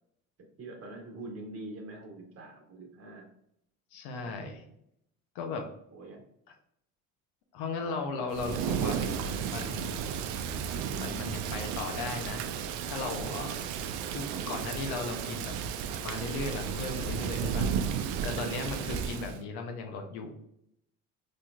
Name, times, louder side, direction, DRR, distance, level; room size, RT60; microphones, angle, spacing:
voice 1, 0.6-3.3 4.2-4.7 5.9-6.2 8.2-8.3, right 2 dB, 35° right, 0 dB, 1.4 m, -45 dB
voice 2, 3.9-4.6 5.3-5.7 7.5-9.2 9.5-10.0 11.0-12.5 12.9-13.6 14.1-15.5 16.0-17.7 18.2-20.3, left 4 dB, 65° left, 4 dB, 0.9 m, -36 dB
Thunder / Rain, 8.3-19.4, right 7 dB, 65° right, 0.5 m, -33 dB
4.2 x 3.2 x 2.4 m, 0.73 s
hypercardioid pair, 65°, 41 cm